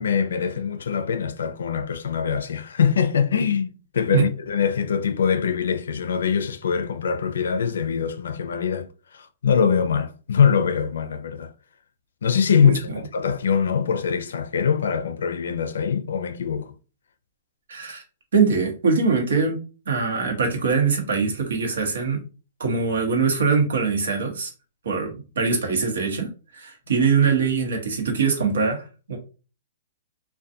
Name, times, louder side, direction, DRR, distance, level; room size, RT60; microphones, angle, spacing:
voice 1, 0.0-11.5 12.2-16.7, left 7 dB, 80° left, 0.4 m, -23 dB
voice 2, 17.7-18.0 18.3-19.6 19.9-22.2 22.6-24.5 24.8-28.8 29.1-29.2, right 5 dB, 85° right, 0.9 m, -22 dB
2.4 x 2.2 x 2.6 m
hypercardioid pair, 130°, 0 cm